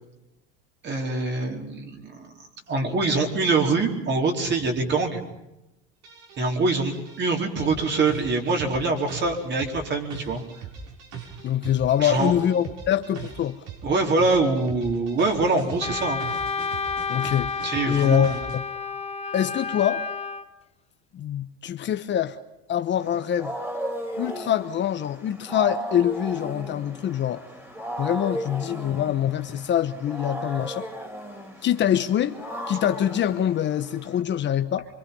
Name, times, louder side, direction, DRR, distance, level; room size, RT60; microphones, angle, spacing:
voice 1, 0.8-2.3 2.7-5.2 6.4-10.4 12.0-12.3 13.8-16.2 17.6-18.4, right 3 dB, 35° right, 4.4 m, -24 dB
sound 1, 6.0-18.6, right 6 dB, 60° right, 6.3 m, -40 dB
voice 2, 11.4-13.6 17.1-18.6 19.3-20.0 21.1-22.4 22.7-23.5 24.2-27.4 28.0-30.9 31.6-32.4 32.7-34.9, left 10 dB, 35° left, 1.1 m, -24 dB
Wind instrument woodwind instrument, 15.8-20.5, left 5 dB, 20° left, 1.1 m, -30 dB
Wild animals, 23.0-34.2, equal, 10° right, 4.1 m, -36 dB
25.5 x 25.0 x 5.5 m
cardioid pair, 130°, 30 cm